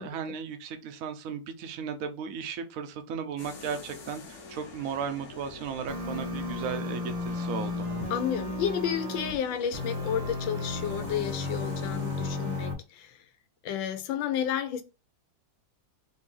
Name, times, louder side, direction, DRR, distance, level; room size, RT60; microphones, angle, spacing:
voice 1, 0.0-7.9, right 6 dB, 65° right, 0.9 m, -35 dB
sound 1, 3.4-12.7, left 4 dB, 50° left, 1.0 m, -47 dB
sound 2, 5.9-9.3 9.7-12.7, left 2 dB, 80° right, 1.9 m, -33 dB
voice 2, 8.1-13.2 13.6-14.8, left 9 dB, 80° left, 1.4 m, -31 dB
4.2 x 2.7 x 3.7 m
omnidirectional pair, 2.1 m